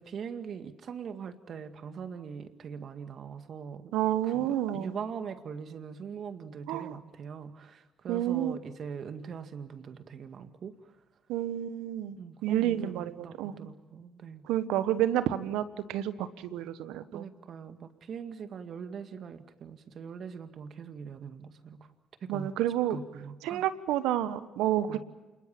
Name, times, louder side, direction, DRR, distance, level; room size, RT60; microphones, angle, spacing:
voice 1, 0.0-3.9 4.2-10.9 12.2-14.4 17.1-21.8 22.2-22.5 22.9-23.7 24.9-25.0, right 6 dB, 55° right, 8 dB, 2.1 m, -42 dB
voice 2, 3.9-4.9 6.7-6.9 8.1-8.6 11.3-12.2 12.4-13.5 14.4-17.3 22.3-23.0 23.4-25.0, right 12 dB, 75° right, 13 dB, 1.2 m, -29 dB
27.5 x 21.5 x 7.4 m, 1.2 s
hypercardioid pair, 55°, 0 cm